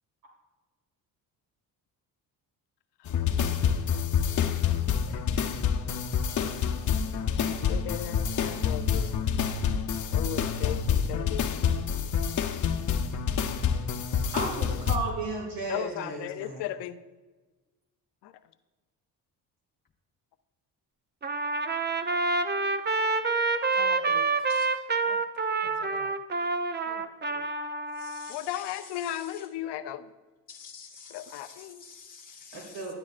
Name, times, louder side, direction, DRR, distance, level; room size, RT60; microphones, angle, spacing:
sound 1, 3.1-15.0, left 7 dB, 50° left, 0.8 m, -27 dB
voice 1, 4.8-5.2 7.3-9.3 10.1-11.5 15.7-17.0 18.2-18.3 23.7-24.3 25.1-25.2 25.6-26.1 26.9-27.5 28.3-30.1 31.1-31.8, left 12 dB, 90° left, 11 dB, 0.7 m, -37 dB
voice 2, 14.3-16.6 32.5-32.9, right 2 dB, 65° right, -2 dB, 2.3 m, -34 dB
Trumpet, 21.2-28.3, right 3 dB, 25° right, 0.6 m, -27 dB
voice 3, 27.9-29.4 30.5-32.9, left 6 dB, 25° left, 3 dB, 0.5 m, -48 dB
12.0 x 11.5 x 2.5 m, 1.2 s
cardioid pair, 95°, 40 cm